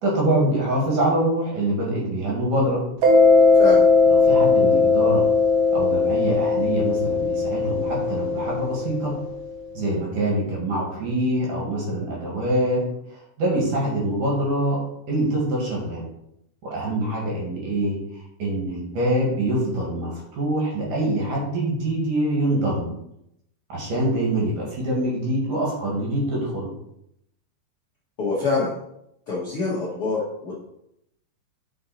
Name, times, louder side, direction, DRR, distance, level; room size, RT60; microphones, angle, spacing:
voice 1, 0.0-2.8 4.1-5.2 5.7-9.1 9.7-12.8 13.1-14.8 15.1-16.0 16.6-18.0 18.4-22.9 23.7-26.7, right 1 dB, 50° right, -3 dB, 3.1 m, -24 dB
Mallet percussion, 3.0-9.4, left 4 dB, 80° right, 1.9 m, -18 dB
voice 2, 28.2-28.8 29.3-30.6, left 3 dB, 80° left, -6 dB, 1.2 m, -25 dB
7.6 x 5.7 x 4.2 m, 0.79 s
omnidirectional pair, 5.3 m